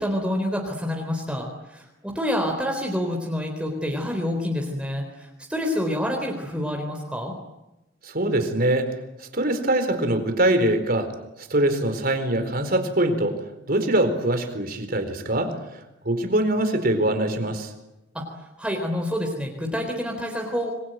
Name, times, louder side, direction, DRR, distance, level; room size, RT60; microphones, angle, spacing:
voice 1, 0.0-7.3 18.1-18.2 18.6-20.7, left 1 dB, 5° right, 1 dB, 3.9 m, -27 dB
voice 2, 8.0-8.9 9.2-11.1 11.4-13.4 13.7-15.6 16.0-17.7, right 1 dB, 50° right, 8 dB, 4.3 m, -23 dB
27.0 x 22.5 x 9.4 m, 0.98 s
head